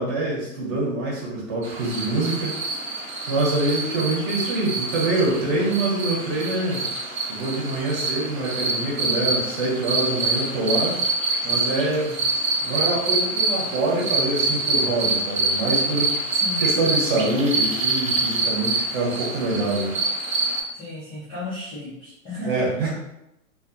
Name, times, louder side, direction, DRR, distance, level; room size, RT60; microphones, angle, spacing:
voice 1, 0.0-2.5 3.3-6.8 7.3-11.0 11.4-12.2 12.6-16.1 16.6-19.9 22.4-22.9, right 2 dB, 30° right, -4 dB, 0.9 m, -25 dB
sound 1, 1.6-20.6, right 3 dB, 70° right, 0.8 m, -26 dB
voice 2, 16.3-16.7 20.7-22.9, left 1 dB, 15° left, -11 dB, 0.4 m, -34 dB
2.4 x 2.3 x 2.5 m, 0.86 s
figure-of-eight pair, 110°, 41 cm